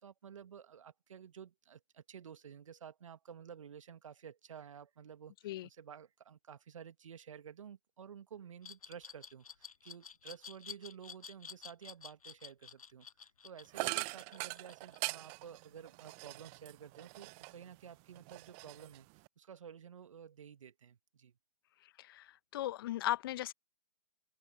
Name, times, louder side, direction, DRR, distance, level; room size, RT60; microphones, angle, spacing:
voice 1, 0.0-21.4, right 8 dB, 65° right, 1.7 m, -52 dB
Glass, 8.6-15.5, left 6 dB, 75° left, 0.9 m, -51 dB
sound 1, 13.7-17.7 18.1-19.3, right 32 dB, 25° right, 0.5 m, -42 dB
voice 2, 22.0-23.5, left 14 dB, 40° left, 0.8 m, -37 dB
open air
figure-of-eight pair, 130°, 18 cm